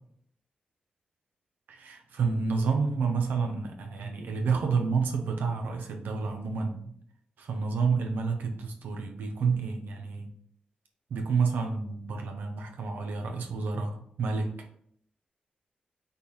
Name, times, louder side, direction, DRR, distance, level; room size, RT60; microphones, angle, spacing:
voice 1, 1.7-6.9 7.4-10.3 11.1-14.5, right 5 dB, 90° right, 3 dB, 0.7 m, -29 dB
5.2 x 2.3 x 4.2 m, 0.67 s
cardioid pair, 60°, 3 cm